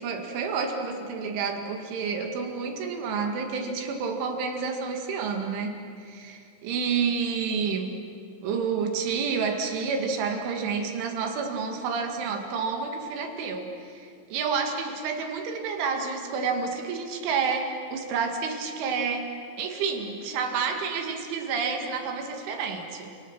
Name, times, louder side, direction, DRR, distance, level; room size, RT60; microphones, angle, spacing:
voice 1, 0.0-7.9 8.4-19.3 19.6-23.1, right 5 dB, 70° right, 3 dB, 4.4 m, -29 dB
29.5 x 27.5 x 6.1 m, 2.3 s
omnidirectional pair, 5.9 m